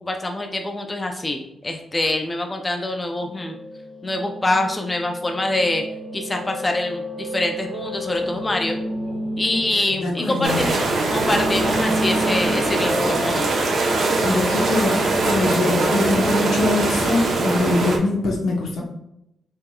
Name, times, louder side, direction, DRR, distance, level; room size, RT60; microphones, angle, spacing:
voice 1, 0.0-3.6 4.0-5.8 6.1-8.8 9.4-13.7, left 2 dB, 20° left, 4 dB, 0.5 m, -25 dB
Piano, 3.1-17.6, equal, 5° right, 1.4 m, -31 dB
voice 2, 10.0-10.6 14.2-18.8, left 2 dB, 85° left, 0 dB, 1.0 m, -23 dB
sound 1, 10.4-18.0, right 2 dB, 70° right, 1.0 m, -22 dB
5.4 x 3.6 x 2.3 m, 0.81 s
cardioid pair, 110°, 0 cm